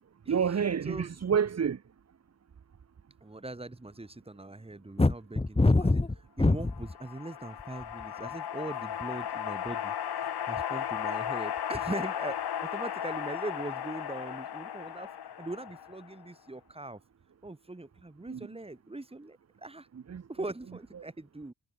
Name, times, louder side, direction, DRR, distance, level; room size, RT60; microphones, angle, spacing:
voice 1, 0.3-1.8 18.3-18.5 19.9-20.2 20.9-21.0, right 7 dB, 40° right, 1.3 m, -29 dB
voice 2, 3.2-6.0 6.4-15.1 15.4-17.0 17.4-19.9 20.3-21.5, right 2 dB, 15° right, 7.6 m, -41 dB
sound 1, 5.0-6.9 7.6-8.0, left 2 dB, 15° left, 1.9 m, -24 dB
sound 2, 6.7-16.2, left 9 dB, 80° left, 2.7 m, -35 dB
wide cardioid pair, 145°, 38 cm